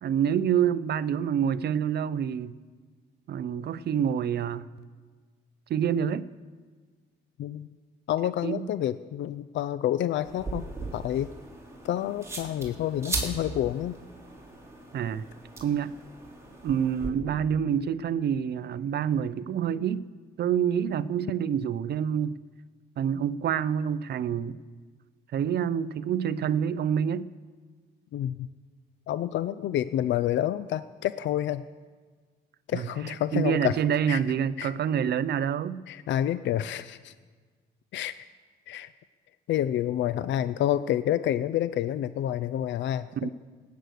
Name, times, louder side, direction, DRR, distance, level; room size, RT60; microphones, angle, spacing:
voice 1, 0.0-2.6 3.3-4.7 5.7-6.3 8.4-8.7 14.9-15.2 15.6-15.9 16.6-20.0 20.4-22.4 23.0-24.6 25.3-27.3 32.7-35.8 43.1-43.3, right 8 dB, 55° right, 0.6 m, -27 dB
voice 2, 8.1-10.7 10.9-11.3 11.8-14.0 28.1-28.5 29.1-31.6 32.7-33.8 34.1-34.2 34.6-34.7 35.9-37.1 37.9-38.1 38.7-38.9 39.5-43.3, left 11 dB, 65° left, 0.5 m, -28 dB
sound 1, 10.2-17.1, right 2 dB, 15° right, 3.1 m, -38 dB
17.5 x 9.3 x 6.5 m
cardioid pair, 90°, 20 cm